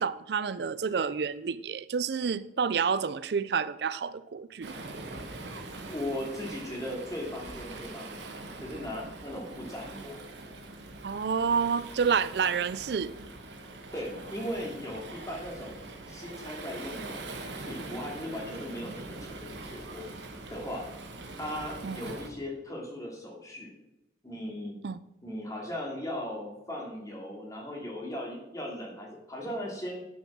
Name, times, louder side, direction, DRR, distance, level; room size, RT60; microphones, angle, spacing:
voice 1, 0.0-4.7 11.0-13.1 21.8-22.0 24.8-25.0, right 6 dB, 70° right, 0.4 m, -29 dB
Waves surf, 4.6-22.3, right 2 dB, 90° right, 1.6 m, -43 dB
voice 2, 5.9-8.2 8.6-10.2 13.9-17.3 17.7-20.1 20.5-20.9 21.4-23.7 24.2-24.7 25.2-30.0, left 1 dB, 20° left, 2.5 m, -38 dB
9.4 x 7.0 x 6.1 m
head